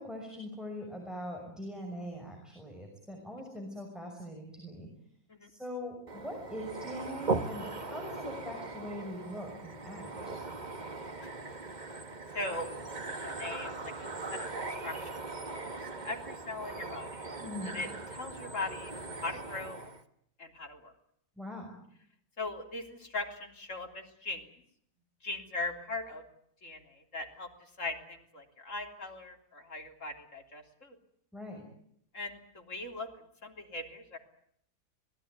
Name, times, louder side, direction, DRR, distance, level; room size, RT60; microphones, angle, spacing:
voice 1, 0.0-4.9 5.5-10.4 17.4-17.8 21.4-21.7 31.3-31.7, left 1 dB, ahead, 1 dB, 6.2 m, -42 dB
sound 1, 6.1-20.0, right 3 dB, 30° right, 1.5 m, -39 dB
voice 2, 12.3-12.7 13.1-15.1 15.5-17.3 17.6-18.9 19.2-19.8 20.4-20.9 22.4-24.5 25.2-26.2 26.6-27.5 27.8-31.0 32.1-33.1 33.4-34.2, left 2 dB, 55° left, 3 dB, 3.9 m, -40 dB
25.0 x 19.5 x 9.5 m, 0.70 s
omnidirectional pair, 1.5 m